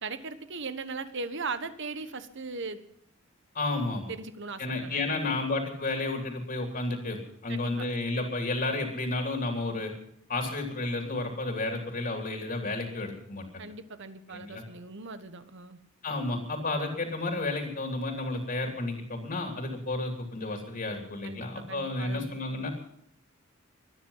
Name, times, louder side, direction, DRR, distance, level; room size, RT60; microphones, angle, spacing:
voice 1, 0.0-2.8 4.1-5.4 7.5-7.9 13.6-15.8 21.2-22.4, right 4 dB, 60° right, 11 dB, 1.3 m, -39 dB
voice 2, 3.5-4.1 4.6-9.9 10.3-13.6 14.3-14.6 16.0-22.7, left 2 dB, 45° left, 3 dB, 2.9 m, -32 dB
23.0 x 9.8 x 5.6 m, 0.74 s
head